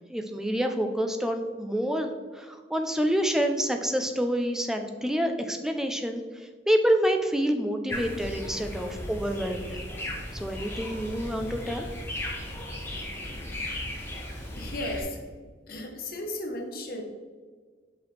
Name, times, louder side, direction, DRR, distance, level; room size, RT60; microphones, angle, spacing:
voice 1, 0.1-9.8 10.3-11.9, equal, 5° right, 5 dB, 0.4 m, -27 dB
sound 1, 7.9-15.0, left 1 dB, 10° left, 1.1 m, -36 dB
voice 2, 14.6-15.3 15.7-17.0, left 1 dB, 50° left, 3 dB, 0.9 m, -35 dB
5.9 x 5.6 x 3.3 m, 1.5 s
head